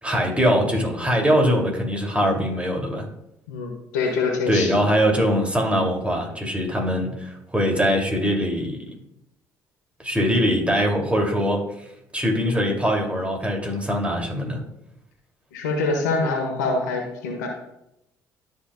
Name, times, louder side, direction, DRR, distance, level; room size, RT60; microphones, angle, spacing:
voice 1, 0.0-3.1 4.5-9.0 10.0-11.6 12.1-14.6, equal, 15° right, 0 dB, 2.6 m, -22 dB
voice 2, 3.5-4.8 15.5-17.5, left 3 dB, 90° left, 2 dB, 1.4 m, -25 dB
13.0 x 5.5 x 2.3 m, 0.83 s
hypercardioid pair, 55°, 9 cm